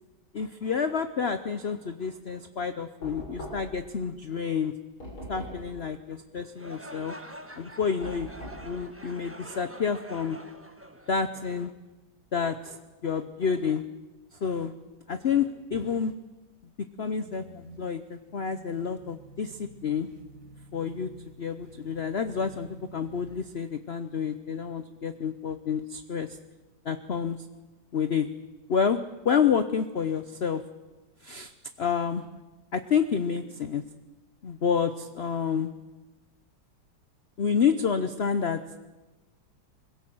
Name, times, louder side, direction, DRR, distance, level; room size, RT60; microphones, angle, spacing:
voice 1, 0.3-4.7 5.3-7.2 7.6-8.3 8.6-10.4 11.1-11.7 12.3-13.8 14.4-14.7 15.1-16.1 16.8-20.1 20.7-21.1 21.4-26.3 26.8-27.4 27.9-28.3 28.7-29.0 29.2-30.6 31.2-31.5 31.8-32.2 32.7-33.8 34.4-35.7 37.4-38.6, left 6 dB, 65° left, 10 dB, 0.6 m, -29 dB
Knock, 3.0-3.9 5.0-5.7 8.0-8.7, equal, 90° left, 7.4 m, -40 dB
sound 1, 6.5-11.7, right 1 dB, 10° right, 0.9 m, -46 dB
sound 2, 17.2-23.7, right 3 dB, 45° right, 1.7 m, -50 dB
21.5 x 16.5 x 7.8 m, 1.1 s
omnidirectional pair, 2.2 m